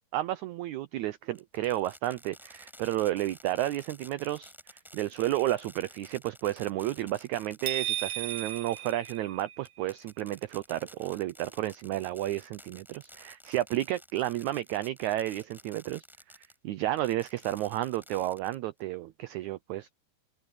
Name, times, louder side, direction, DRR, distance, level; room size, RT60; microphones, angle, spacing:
voice 1, 0.1-16.0 16.6-20.0, right 14 dB, 85° right, 1.6 m, -32 dB
Fireworks, 1.3-16.6 17.0-18.8, equal, ahead, 5.8 m, -52 dB
sound 1, 7.7-9.8, right 13 dB, 70° right, 1.7 m, -35 dB
open air
omnidirectional pair, 4.1 m